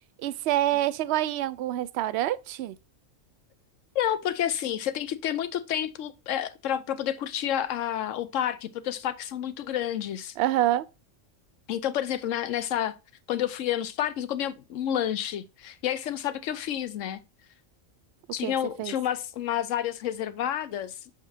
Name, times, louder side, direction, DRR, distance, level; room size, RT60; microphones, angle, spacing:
voice 1, 0.2-2.8 10.4-10.9 18.4-18.5 18.8-18.9, right 13 dB, 65° right, 0.7 m, -26 dB
voice 2, 3.9-10.3 11.7-13.0 13.3-17.2 18.3-21.0, left 10 dB, 75° left, 1.0 m, -29 dB
6.7 x 5.2 x 2.7 m
omnidirectional pair, 1.4 m